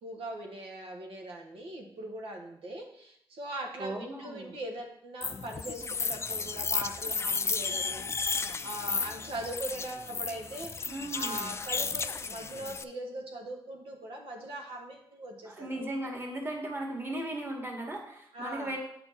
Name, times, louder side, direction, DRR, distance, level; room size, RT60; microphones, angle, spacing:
voice 1, 0.0-15.8 18.3-18.7, right 1 dB, 90° right, 1 dB, 1.5 m, -41 dB
voice 2, 3.8-4.5 10.9-11.5 15.4-18.8, right 1 dB, 25° right, 0 dB, 2.0 m, -37 dB
sound 1, 5.2-12.8, left 4 dB, 30° left, 0.4 m, -33 dB
8.9 x 4.3 x 5.8 m, 0.72 s
cardioid pair, 105°, 9 cm